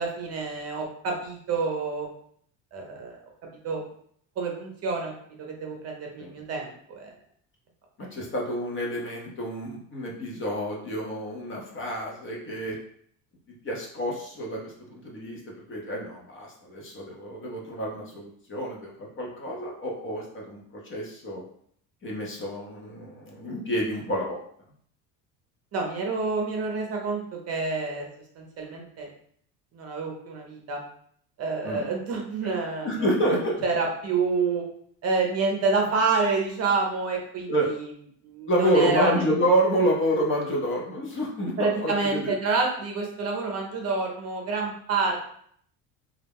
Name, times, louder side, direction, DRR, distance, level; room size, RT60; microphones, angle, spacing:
voice 1, 0.0-2.1 2.7-3.2 3.6-3.8 4.4-5.1 5.4-7.1 25.7-28.1 28.4-29.1 29.7-30.8 31.4-33.1 33.6-34.6 35.0-37.9 38.2-39.1 41.6-45.2, right 4 dB, 40° right, 1 dB, 0.6 m, -28 dB
voice 2, 8.1-12.8 13.6-15.4 15.7-21.4 22.0-24.4 31.6-31.8 32.4-32.5 32.8-33.6 37.5-37.7 38.5-42.3, equal, 35° left, -2 dB, 0.7 m, -28 dB
2.3 x 2.1 x 3.4 m, 0.64 s
cardioid pair, 120°, 38 cm